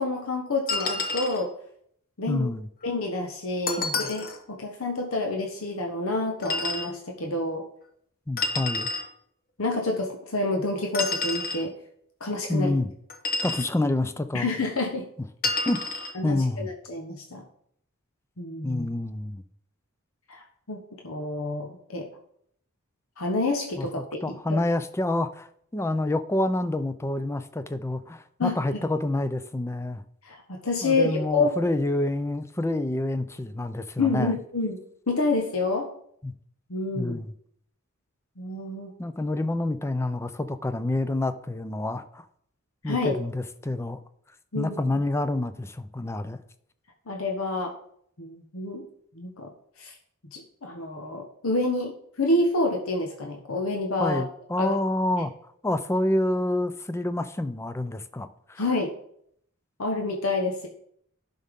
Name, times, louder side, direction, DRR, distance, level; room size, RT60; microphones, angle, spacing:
voice 1, 0.0-1.5 2.2-2.5 2.8-7.6 9.6-11.7 12.2-12.7 14.3-15.0 15.6-15.7 16.1-17.4 18.4-18.9 20.3-22.1 23.2-24.2 24.5-24.6 28.4-28.5 30.2-31.5 34.0-34.8 35.1-35.9 36.7-37.2 38.4-38.9 42.8-43.2 44.5-44.8 47.1-47.7 48.2-48.8 49.1-49.5 49.8-49.9 50.3-54.2 54.6-54.7 58.6-58.9 59.8-60.7, left 2 dB, 85° left, 1 dB, 1.1 m, -28 dB
sound 1, 0.7-1.4 3.7-4.4 6.4-6.9 8.4-9.1 10.9-11.6 13.1-13.7 15.4-16.1, left 3 dB, 45° left, 1.0 m, -29 dB
voice 2, 2.3-2.7 3.8-4.1 8.3-8.9 12.5-12.9 13.4-14.5 15.7-15.8 16.2-16.7 18.6-19.4 23.8-25.5 25.7-30.0 30.8-34.4 36.2-36.3 36.9-37.3 39.0-42.2 42.8-44.0 44.5-46.4 54.0-55.3 55.6-58.6, left 1 dB, 15° left, 11 dB, 0.4 m, -28 dB
11.0 x 5.5 x 3.6 m, 0.68 s
head